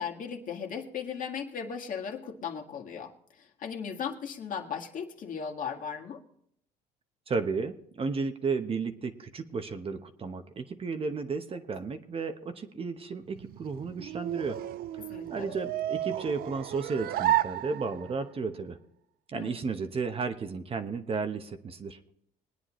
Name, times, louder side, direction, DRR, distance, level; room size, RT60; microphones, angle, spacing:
voice 1, 0.0-6.2 15.0-15.6 19.3-19.5, left 7 dB, 55° left, 3 dB, 1.8 m, -37 dB
voice 2, 7.3-14.6 15.3-18.8 19.3-22.0, right 4 dB, 35° right, 8 dB, 1.0 m, -33 dB
sound 1, 13.3-18.3, right 13 dB, 60° right, 0.5 m, -32 dB
21.5 x 9.6 x 3.1 m, 0.69 s
cardioid pair, 110°, 17 cm